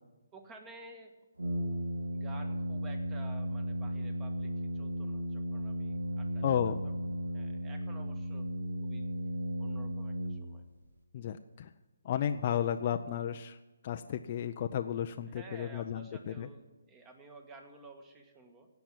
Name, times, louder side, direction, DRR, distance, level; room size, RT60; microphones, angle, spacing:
voice 1, 0.3-1.1 2.1-6.4 6.8-6.9 7.3-8.5 8.8-9.1 9.6-10.6 12.0-12.2 15.3-18.7, right 3 dB, 15° right, 5 dB, 1.6 m, -53 dB
Brass instrument, 1.4-10.9, equal, 90° right, 1.8 m, -35 dB
voice 2, 6.4-6.8 11.1-11.7 12.0-13.6 13.8-16.5, left 9 dB, 35° left, 6 dB, 0.5 m, -33 dB
16.0 x 5.9 x 9.2 m, 1.1 s
figure-of-eight pair, 145°, 0 cm